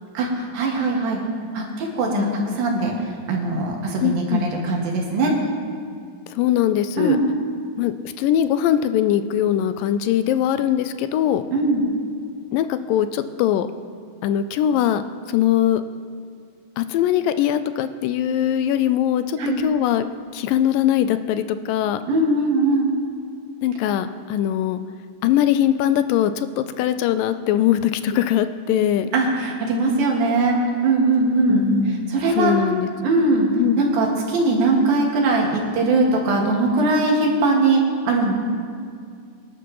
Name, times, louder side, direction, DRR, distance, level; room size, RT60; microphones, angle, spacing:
voice 1, 0.5-1.2 1.5-2.3 2.5-2.9 3.3-5.4 7.0-7.2 11.5-11.8 19.4-19.6 22.1-22.9 29.1-30.5 30.8-32.5 33.0-33.5 33.8-38.3, right 3 dB, 85° right, -1 dB, 3.7 m, -20 dB
voice 2, 2.1-2.6 4.0-4.5 6.4-7.2 7.8-11.4 12.5-13.7 14.2-15.0 15.3-15.8 16.8-20.1 20.3-22.0 23.6-24.8 25.2-29.1 31.5-32.9 33.6-33.8, left 10 dB, 80° left, 11 dB, 2.2 m, -21 dB
25.5 x 11.5 x 3.1 m, 2.2 s
omnidirectional pair, 4.0 m